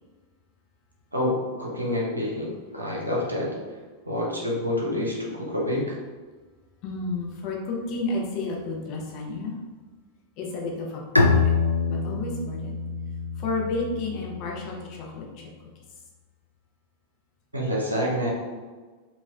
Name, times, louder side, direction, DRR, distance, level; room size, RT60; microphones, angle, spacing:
voice 1, 1.1-3.5 4.1-5.8 17.5-18.3, left 1 dB, 80° right, -3 dB, 0.7 m, -27 dB
voice 2, 6.8-9.5 10.4-11.5 11.9-12.7 13.4-15.3, left 3 dB, 40° left, -2 dB, 0.7 m, -31 dB
Bowed string instrument, 11.1-14.6, left 4 dB, 90° left, 0.3 m, -25 dB
4.1 x 2.4 x 2.3 m, 1.4 s
figure-of-eight pair, 90°, 0 cm